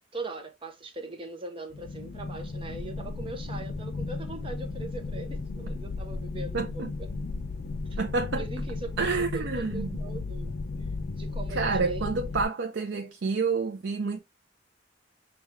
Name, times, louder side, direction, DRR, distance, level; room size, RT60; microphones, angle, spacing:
voice 1, 0.1-7.1 7.9-8.0 8.4-9.0 9.3-10.6 11.2-12.1, right 2 dB, 30° right, 0.6 m, -40 dB
sound 1, 1.7-12.4, left 3 dB, 50° left, 0.3 m, -35 dB
voice 2, 6.5-6.9 8.0-8.4 9.0-9.9 11.5-14.2, right 4 dB, 70° right, 0.5 m, -28 dB
5.7 x 2.3 x 3.1 m
head